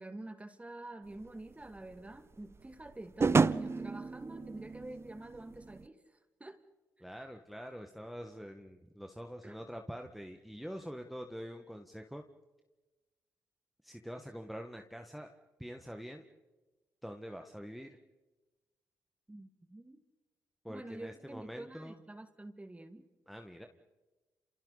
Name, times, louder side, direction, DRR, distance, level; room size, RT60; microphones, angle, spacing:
voice 1, 0.0-6.6 9.4-9.6 19.3-20.0 20.7-23.0, right 2 dB, 15° right, 8 dB, 2.2 m, -47 dB
sound 1, 1.2-5.9, right 4 dB, 35° right, 0.7 m, -32 dB
voice 2, 7.0-12.2 13.8-15.3 15.6-16.2 17.0-17.9 20.6-22.0 23.3-23.7, equal, ahead, 4 dB, 1.8 m, -45 dB
29.5 x 28.0 x 4.2 m, 1.2 s
supercardioid pair, 50°, 8 cm